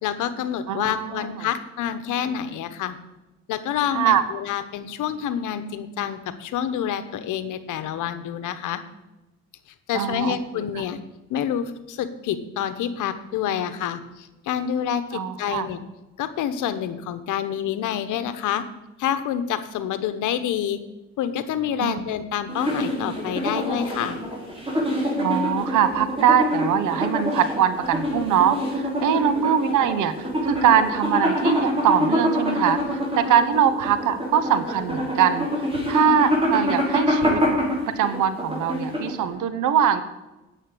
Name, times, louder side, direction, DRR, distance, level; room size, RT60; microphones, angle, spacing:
voice 1, 0.0-3.0 3.5-8.8 9.9-11.0 11.3-15.8 16.2-18.6 19.0-20.8 21.2-24.2, left 9 dB, 85° left, 11 dB, 1.1 m, -27 dB
voice 2, 0.7-1.3 3.9-4.2 9.9-10.6 15.1-15.7 21.8-22.0 25.2-30.1 30.4-32.8 33.2-35.5 35.9-37.6 38.0-40.0, right 9 dB, 85° right, 12 dB, 1.1 m, -22 dB
sound 1, 22.5-39.3, equal, 20° right, 4.7 m, -25 dB
9.3 x 7.4 x 8.5 m, 1.0 s
cardioid pair, 90°, 30 cm